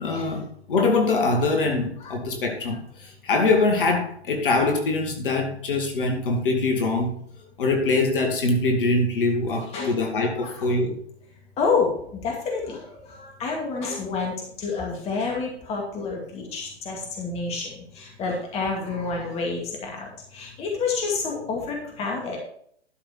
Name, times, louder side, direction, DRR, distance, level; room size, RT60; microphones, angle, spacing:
voice 1, 0.0-7.1 7.6-10.9, left 3 dB, 50° left, 2 dB, 2.4 m, -23 dB
voice 2, 11.6-22.4, left 4 dB, 20° left, 0 dB, 2.3 m, -29 dB
12.0 x 5.9 x 4.5 m, 0.62 s
figure-of-eight pair, 120°, 33 cm